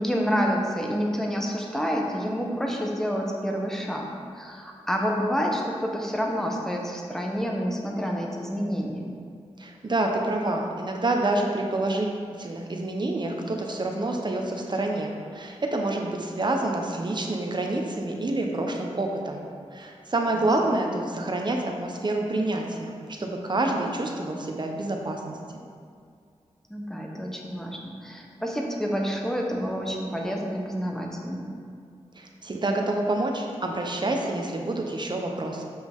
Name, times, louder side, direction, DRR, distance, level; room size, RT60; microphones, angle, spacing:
voice 1, 0.0-4.0 4.3-9.1 20.3-20.5 26.7-31.5, equal, 5° left, 0 dB, 1.1 m, -28 dB
voice 2, 9.6-19.4 19.7-22.9 23.2-25.4 32.2-35.6, right 2 dB, 45° right, 1 dB, 1.0 m, -27 dB
7.5 x 5.9 x 3.7 m, 2.2 s
wide cardioid pair, 70°, 11 cm